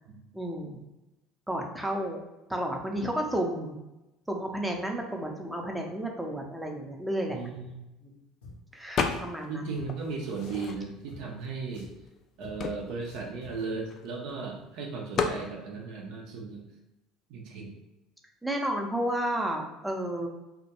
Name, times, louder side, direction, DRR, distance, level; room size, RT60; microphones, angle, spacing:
voice 1, 0.3-0.8 1.5-2.2 2.5-3.8 4.3-7.4 8.0-8.2 8.7-9.7 18.4-20.3, right 1 dB, 5° right, 1 dB, 0.5 m, -32 dB
voice 2, 7.3-7.8 9.5-11.9 12.4-16.6 17.3-17.7, right 4 dB, 65° right, 0 dB, 0.5 m, -36 dB
Drum, 8.4-8.6 9.1-9.3 9.7-9.9 10.4-10.7 11.1-11.2 11.7-12.0 12.4-12.6 13.1-13.6, left 2 dB, 80° left, 0.7 m, -47 dB
sound 1, 9.0-9.5 9.9-11.1 11.8-11.9 12.1-14.3 15.2-15.5, left 5 dB, 45° left, 0.3 m, -32 dB
2.3 x 2.1 x 2.8 m, 0.97 s
hypercardioid pair, 65°, 0 cm